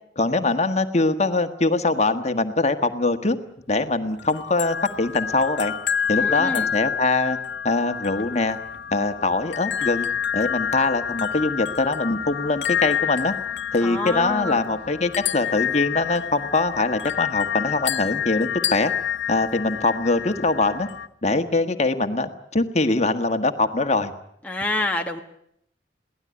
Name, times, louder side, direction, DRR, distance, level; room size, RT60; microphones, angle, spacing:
voice 1, 0.2-3.4 3.7-5.7 6.1-7.4 7.6-8.6 8.9-10.1 10.3-13.3 13.7-18.9 19.3-20.9 21.2-24.1, left 3 dB, 35° left, 7 dB, 1.4 m, -23 dB
sound 1, 4.2-21.1, left 9 dB, 70° left, 1.2 m, -28 dB
voice 2, 6.1-6.7 13.8-14.8 24.4-25.2, left 2 dB, 10° left, 1 dB, 1.2 m, -28 dB
23.0 x 17.5 x 9.7 m, 0.74 s
head